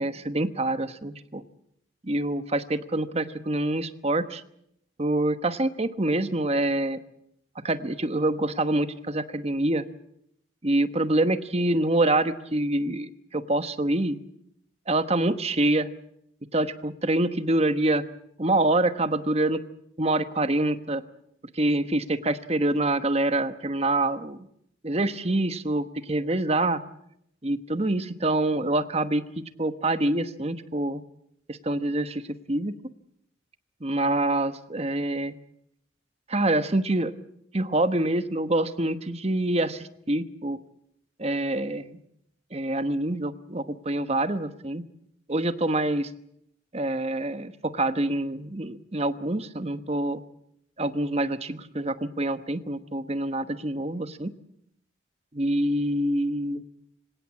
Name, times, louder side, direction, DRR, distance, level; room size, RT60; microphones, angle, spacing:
voice 1, 0.0-1.4 2.0-4.4 5.0-7.0 7.6-9.9 10.6-14.2 14.9-15.9 16.5-18.0 18.4-19.6 20.0-21.0 21.5-24.4 24.8-26.8 27.4-31.0 31.5-32.2 32.5-32.7 33.8-35.3 36.3-37.1 37.5-40.6 41.2-42.0 42.5-44.8 45.3-46.1 46.7-50.2 50.8-54.3 55.3-56.6, right 1 dB, 30° right, 11 dB, 1.1 m, -26 dB
26.0 x 17.5 x 8.5 m, 0.76 s
head